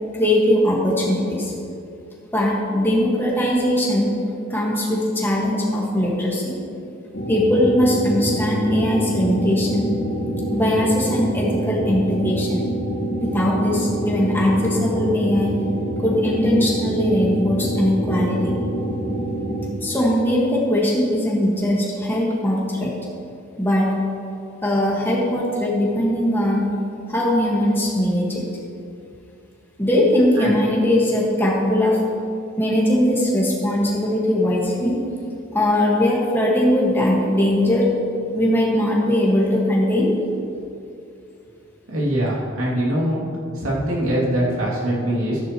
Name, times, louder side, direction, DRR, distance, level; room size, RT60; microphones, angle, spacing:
voice 1, 0.1-1.5 2.3-4.1 4.5-6.5 7.3-9.9 10.5-12.6 13.2-15.6 16.0-18.5 19.8-22.9 23.6-23.9 24.6-26.7 27.1-28.5 29.8-32.0 32.6-35.0 35.5-37.8 38.3-40.2, left 1 dB, 10° left, -4 dB, 1.7 m, -20 dB
sound 1, 7.1-19.7, right 1 dB, 55° left, 1.5 m, -26 dB
voice 2, 41.9-43.2 43.5-45.4, right 1 dB, 90° right, -5 dB, 2.7 m, -22 dB
13.5 x 10.0 x 3.1 m, 2.6 s
head